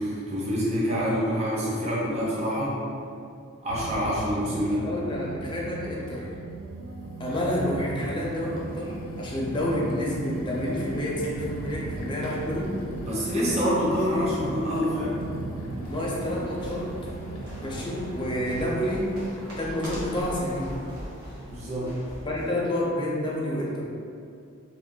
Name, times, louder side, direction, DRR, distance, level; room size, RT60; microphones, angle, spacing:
voice 1, 0.0-2.8 3.6-4.9 13.0-15.2 21.5-21.9, equal, 30° right, -7 dB, 0.7 m, -26 dB
sound 1, 3.7-19.1, right 3 dB, 70° right, 0.3 m, -39 dB
sound 2, 4.6-4.7 5.1-5.7 6.4-19.6, left 1 dB, 70° left, 0.6 m, -40 dB
voice 2, 4.8-6.3 7.2-12.8 15.9-16.9 17.6-19.2 19.6-20.8 22.3-23.8, left 1 dB, 20° left, -4 dB, 0.5 m, -29 dB
sound 3, 15.4-22.5, equal, 85° right, 1.0 m, -41 dB
2.9 x 2.4 x 3.7 m, 2.5 s
head